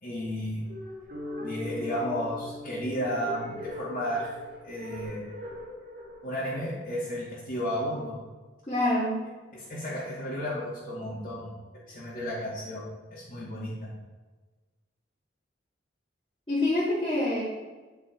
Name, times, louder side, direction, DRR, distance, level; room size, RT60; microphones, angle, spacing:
voice 1, 0.0-0.6 1.4-4.3 4.6-5.2 6.2-8.2 9.5-11.5 11.9-12.8 13.1-13.9, equal, 50° left, -9 dB, 2.2 m, -33 dB
sound 1, 0.6-7.8, left 1 dB, 50° right, 1.6 m, -44 dB
sound 2, 1.1-5.4, left 2 dB, 80° right, 2.4 m, -42 dB
voice 2, 8.7-9.2 16.5-17.4, left 1 dB, 30° left, -10 dB, 2.2 m, -26 dB
9.4 x 5.9 x 4.6 m, 1.3 s
head